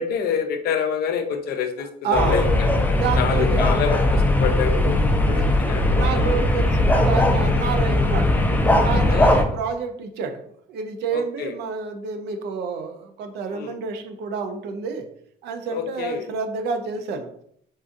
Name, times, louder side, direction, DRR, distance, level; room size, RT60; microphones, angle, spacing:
voice 1, 0.0-2.7 3.2-5.0 5.3-6.4 9.1-9.6 11.1-11.5 13.5-13.7 15.7-16.3, left 7 dB, 65° left, 6 dB, 0.5 m, -27 dB
voice 2, 1.8-2.4 2.9-3.8 5.2-5.5 5.9-8.4 8.8-10.4 10.7-15.1 15.4-17.3, right 5 dB, 80° right, 5 dB, 0.6 m, -29 dB
sound 1, 2.1-9.4, left 1 dB, 10° left, 0.4 m, -19 dB
4.0 x 2.5 x 2.5 m, 0.67 s
cardioid pair, 110°, 17 cm